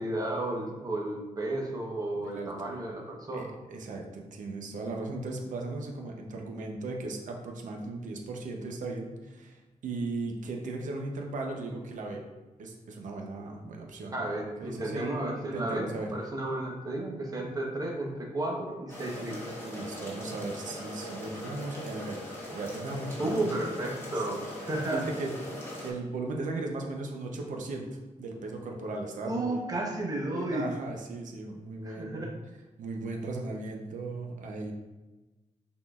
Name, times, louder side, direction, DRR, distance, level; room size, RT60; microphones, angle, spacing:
voice 1, 0.0-3.5 14.1-19.5 23.2-25.0 29.2-30.7 31.8-32.3, right 1 dB, 30° right, -1 dB, 0.9 m, -33 dB
voice 2, 2.3-2.8 3.3-12.2 12.6-14.3 14.6-15.0 15.3-16.1 19.6-23.5 24.1-24.2 24.9-25.3 25.8-29.6 30.2-32.3 32.8-34.7, right 2 dB, 75° right, 1 dB, 0.7 m, -37 dB
sound 1, 18.9-25.9, equal, 20° left, 1.1 m, -40 dB
5.9 x 3.7 x 2.4 m, 1.1 s
wide cardioid pair, 125°, 13 cm